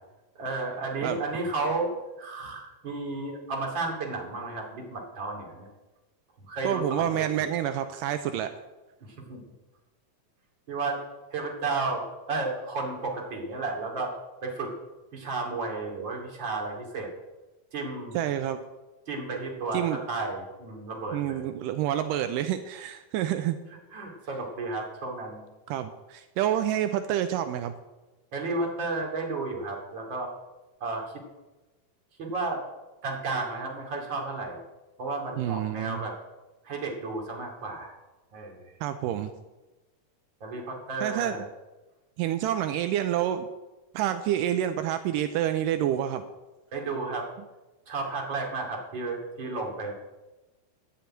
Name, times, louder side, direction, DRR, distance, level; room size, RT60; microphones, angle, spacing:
voice 1, 0.3-5.7 6.4-7.5 9.0-9.4 10.7-11.0 11.3-14.1 14.4-14.7 15.1-17.1 17.7-18.2 19.1-21.5 23.9-25.4 28.3-30.3 30.8-31.2 32.2-32.6 33.0-34.6 35.0-36.1 36.6-37.9 38.3-38.7 40.4-41.5 46.7-47.3 47.9-49.9, right 3 dB, 35° right, 0 dB, 2.7 m, -33 dB
voice 2, 6.6-8.5 18.1-18.6 19.7-20.0 21.1-23.6 25.7-27.7 35.4-36.0 38.8-39.3 41.0-41.5 42.2-43.5 43.9-46.2, right 11 dB, 85° right, 9 dB, 1.9 m, -28 dB
11.0 x 6.9 x 8.8 m, 1.1 s
omnidirectional pair, 4.4 m